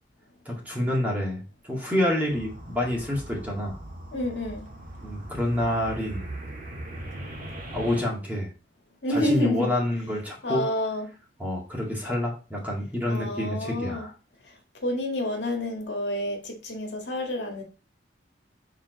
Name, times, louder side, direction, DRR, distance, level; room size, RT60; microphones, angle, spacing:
voice 1, 0.5-3.8 5.0-6.3 7.7-8.5 9.1-10.7 11.4-14.1, left 1 dB, 10° right, 2.0 m, -28 dB
sound 1, 2.3-8.0, right 1 dB, 50° right, 1.6 m, -40 dB
voice 2, 4.1-4.7 9.0-9.7 10.4-11.1 13.1-14.1 14.8-17.6, left 1 dB, 70° left, 1.8 m, -28 dB
7.2 x 3.8 x 3.9 m
head